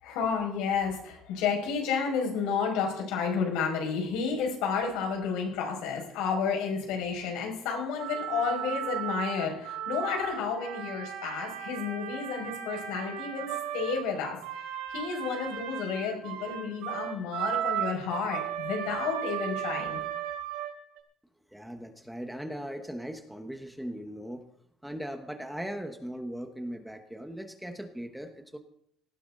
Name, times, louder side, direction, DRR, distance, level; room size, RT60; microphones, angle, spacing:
voice 1, 0.0-13.5 13.7-14.4 14.9-20.0, left 6 dB, 90° left, 2 dB, 5.4 m, -31 dB
sound 1, 8.0-21.0, right 10 dB, 85° right, 2.7 m, -35 dB
voice 2, 21.5-24.5 24.8-28.6, equal, ahead, 6 dB, 1.1 m, -39 dB
18.5 x 15.5 x 3.8 m, 0.69 s
cardioid pair, 175°, 0 cm